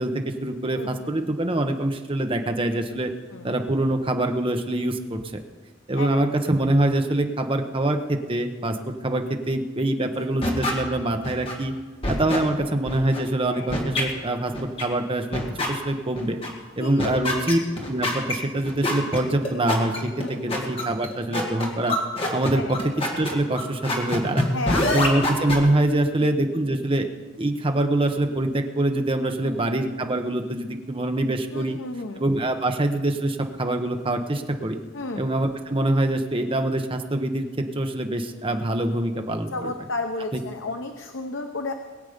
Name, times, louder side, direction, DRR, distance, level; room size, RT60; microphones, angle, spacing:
voice 1, 0.0-3.1 3.4-5.4 5.9-11.7 12.1-16.4 16.8-17.6 17.9-22.0 22.3-22.6 23.1-24.5 24.9-27.1 27.4-31.8 32.2-34.8 35.2-39.7 40.3-40.4, right 1 dB, 25° right, 5 dB, 1.0 m, -24 dB
voice 2, 0.7-1.1 3.3-3.5 6.0-6.1 10.0-10.3 13.5-13.9 16.8-17.6 20.2-20.7 22.5-22.8 24.5-25.0 26.2-26.3 29.4-29.6 31.5-32.2 34.9-35.3 39.5-41.7, left 3 dB, 80° left, 5 dB, 0.8 m, -33 dB
sound 1, 10.4-10.7 11.2-11.5 12.0-12.4 12.9-13.2 13.7-14.0 14.5-14.8 15.3-15.7 16.1-16.5 17.0-25.6, left 1 dB, 30° left, 2.2 m, -25 dB
22.0 x 8.2 x 5.1 m, 1.4 s
head